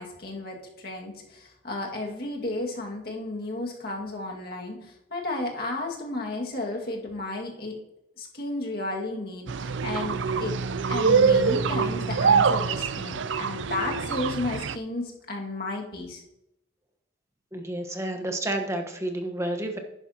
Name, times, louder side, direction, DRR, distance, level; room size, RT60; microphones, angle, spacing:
voice 1, 0.0-7.7 8.2-10.6 10.9-16.2, left 2 dB, 50° left, 0 dB, 2.0 m, -33 dB
sound 1, 9.5-14.8, right 5 dB, 70° right, 0.4 m, -24 dB
voice 2, 17.5-19.8, right 1 dB, 15° right, 4 dB, 1.1 m, -30 dB
11.0 x 9.8 x 2.9 m, 0.84 s
head